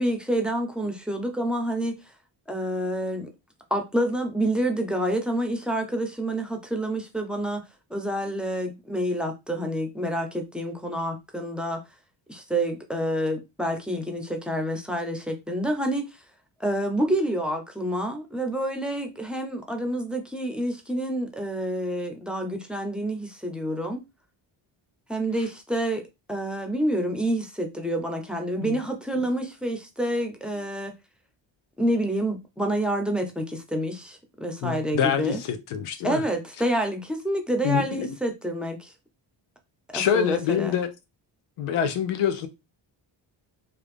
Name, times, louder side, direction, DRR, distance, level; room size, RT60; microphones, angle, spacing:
voice 1, 0.0-1.9 2.5-3.3 3.7-7.6 7.9-11.8 12.3-16.1 16.6-24.0 25.1-26.0 26.3-30.9 31.8-35.4 36.0-38.9 39.9-40.7, right 1 dB, ahead, 0.9 m, -28 dB
voice 2, 34.6-36.2 37.6-38.1 39.9-40.9 41.6-42.5, left 8 dB, 85° left, 0.7 m, -25 dB
3.0 x 2.4 x 3.4 m
cardioid pair, 70°, 49 cm